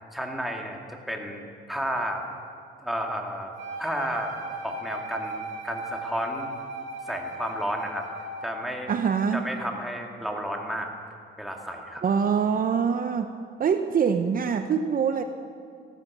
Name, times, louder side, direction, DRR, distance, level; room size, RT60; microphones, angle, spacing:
voice 1, 0.1-2.3 2.8-3.5 3.8-4.3 4.6-6.5 7.1-8.1 8.4-8.9 9.3-10.9 11.4-12.0, equal, ahead, 1 dB, 2.1 m, -32 dB
Wind instrument woodwind instrument, 3.6-8.6, right 2 dB, 70° right, 3.2 m, -37 dB
voice 2, 8.9-9.4 12.0-13.3 13.6-15.2, right 6 dB, 45° right, 8 dB, 0.7 m, -24 dB
15.0 x 14.0 x 6.1 m, 2.3 s
cardioid pair, 105°, 20 cm